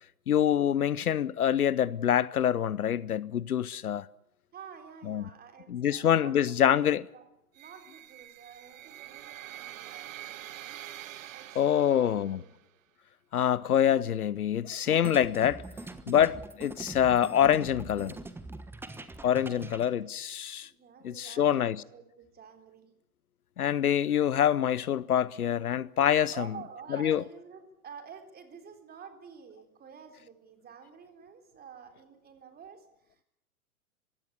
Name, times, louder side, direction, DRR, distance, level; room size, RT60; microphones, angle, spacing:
voice 1, 0.3-4.1 5.1-5.2 5.7-7.0 11.6-12.4 13.3-15.6 16.1-18.1 19.2-20.7 21.0-21.8 23.6-26.3 27.0-27.2, left 9 dB, 80° left, 0.8 m, -25 dB
voice 2, 4.5-6.9 7.1-7.3 7.5-10.8 11.3-12.6 19.5-19.9 20.6-22.9 24.1-24.2 26.3-33.2, right 7 dB, 20° right, 3.9 m, -50 dB
sound 1, 7.6-12.6, right 13 dB, 60° right, 1.2 m, -45 dB
sound 2, 14.8-19.9, right 2 dB, 5° right, 1.3 m, -43 dB
22.0 x 16.5 x 9.7 m
figure-of-eight pair, 110°, 44 cm